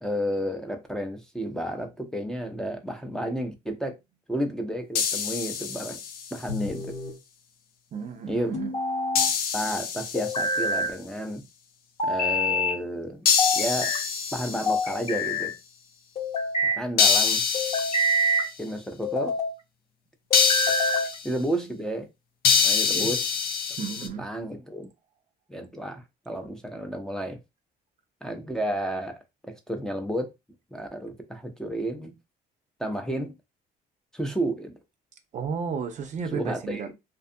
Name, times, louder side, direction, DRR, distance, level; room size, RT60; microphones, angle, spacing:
voice 1, 0.0-3.9 4.3-6.0 6.3-7.0 8.3-8.5 9.5-11.5 12.0-13.2 13.5-13.9 14.3-15.5 16.6-17.4 18.6-19.4 21.2-22.1 22.6-23.3 24.2-24.9 25.5-27.4 28.2-29.2 29.5-30.3 30.7-32.1 32.8-33.4 34.1-34.8 36.3-36.8, right 1 dB, 5° left, 0.5 m, -31 dB
sound 1, 5.0-6.4 9.2-10.7 13.3-15.1 17.0-18.4 20.3-21.3 22.4-24.1, left 6 dB, 60° left, 0.5 m, -25 dB
sound 2, 6.5-7.2 8.5-9.3 10.1-10.9 12.0-12.8 13.4-14.0 14.7-15.5 16.2-16.8 17.5-18.5 19.0-19.5 20.3-21.1, left 1 dB, 40° left, 0.9 m, -26 dB
voice 2, 7.9-8.7 22.9-23.1 23.8-24.3 35.3-36.9, right 6 dB, 45° right, 0.5 m, -33 dB
2.6 x 2.4 x 2.5 m
cardioid pair, 110°, 17 cm